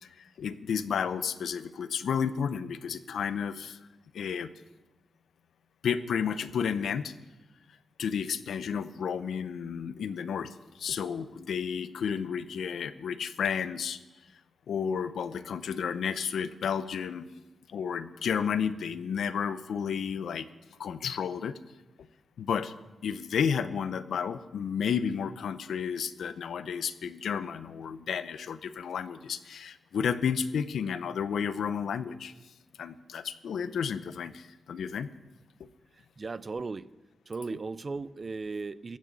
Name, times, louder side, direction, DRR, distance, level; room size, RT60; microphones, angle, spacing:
voice 1, 0.0-3.8 4.1-4.5 5.8-7.1 8.0-14.0 14.7-17.3 17.7-20.5 20.8-21.6 22.4-22.7 23.0-32.3 32.8-35.1, left 7 dB, 80° left, 13 dB, 0.6 m, -32 dB
voice 2, 36.0-36.9 37.3-39.0, right 4 dB, 35° right, 17 dB, 0.4 m, -37 dB
15.5 x 6.4 x 9.0 m, 1.1 s
wide cardioid pair, 125°, 0 cm